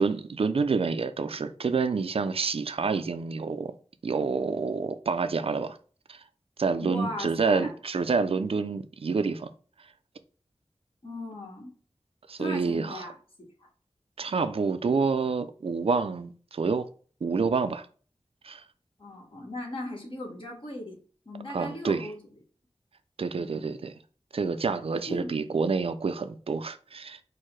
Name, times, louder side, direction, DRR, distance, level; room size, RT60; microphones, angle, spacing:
voice 1, 0.0-3.7 4.0-5.8 6.1-6.2 6.6-9.5 12.3-13.1 14.2-16.9 17.2-17.9 18.4-18.6 21.5-22.1 23.2-23.9 24.3-27.2, right 4 dB, 65° right, 0.4 m, -28 dB
voice 2, 6.8-7.7 11.0-11.7 12.4-13.7 19.0-21.0 21.2-22.2 23.3-23.7 25.1-25.5, left 1 dB, 55° left, 1.4 m, -38 dB
4.6 x 2.1 x 4.5 m
wide cardioid pair, 55°, 11 cm